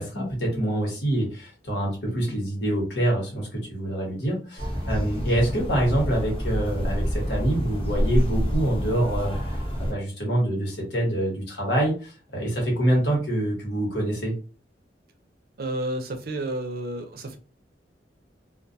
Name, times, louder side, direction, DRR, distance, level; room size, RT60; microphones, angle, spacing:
voice 1, 0.0-9.3 9.8-14.3, right 1 dB, 80° left, 1.2 m, -26 dB
sound 1, 4.6-9.9, equal, 30° left, 0.8 m, -27 dB
voice 2, 15.6-17.4, right 1 dB, 55° right, 0.5 m, -31 dB
2.3 x 2.2 x 2.6 m
head